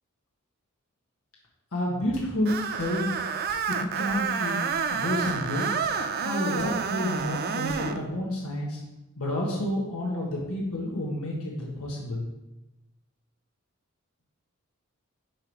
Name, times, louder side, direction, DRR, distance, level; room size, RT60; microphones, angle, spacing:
voice 1, 1.7-3.1 3.7-4.6 4.9-5.7 6.2-8.8 9.2-12.3, left 1 dB, 80° left, -3 dB, 1.4 m, -30 dB
sound 1, 2.1-2.3 2.8-3.1 3.5-3.7 4.1-4.3 4.6-4.9 5.3-5.5 5.8-6.0 6.6-6.8 7.2-7.3 7.7-7.9, left 1 dB, 60° left, 2.5 m, -49 dB
Screech, 2.5-8.0, right 6 dB, 45° right, 0.4 m, -29 dB
9.4 x 3.2 x 4.7 m, 0.96 s
head